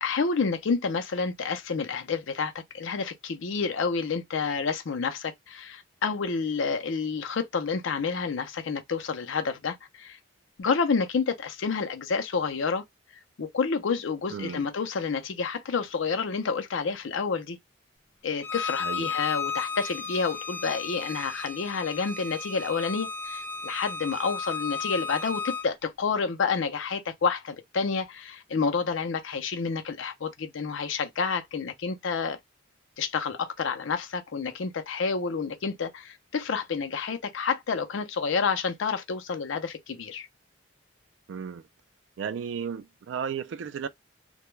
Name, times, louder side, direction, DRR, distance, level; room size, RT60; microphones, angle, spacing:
voice 1, 0.0-10.2 10.6-12.8 13.4-17.6 18.2-32.4 33.0-40.3, left 5 dB, 70° left, 0.5 m, -29 dB
voice 2, 14.3-14.7 18.8-19.1 41.3-41.6 42.2-43.9, right 7 dB, 65° right, 0.3 m, -34 dB
Bowed string instrument, 18.4-25.7, left 5 dB, 10° left, 0.5 m, -34 dB
2.2 x 2.2 x 3.1 m
head